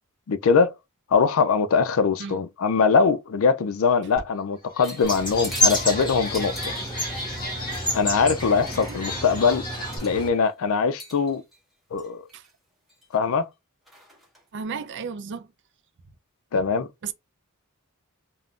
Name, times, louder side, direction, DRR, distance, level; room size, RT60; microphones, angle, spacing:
voice 1, 0.3-0.7 1.1-6.7 7.9-9.6 10.0-11.4 11.9-12.2 13.1-13.4 16.5-16.9, left 5 dB, 70° left, 0.4 m, -22 dB
sound 1, 4.2-4.3 4.6-10.0, left 1 dB, 40° left, 1.2 m, -36 dB
sound 2, 4.8-8.1 8.4-10.5 11.0-11.6 12.0-12.5 12.9-13.4 13.9-14.4, right 1 dB, ahead, 1.1 m, -42 dB
sound 3, 5.0-10.3, left 1 dB, 20° left, 1.2 m, -29 dB
voice 2, 8.9-9.2 12.3-12.4 14.5-15.5 17.0-17.1, right 6 dB, 55° right, 0.4 m, -34 dB
3.6 x 2.1 x 2.4 m
head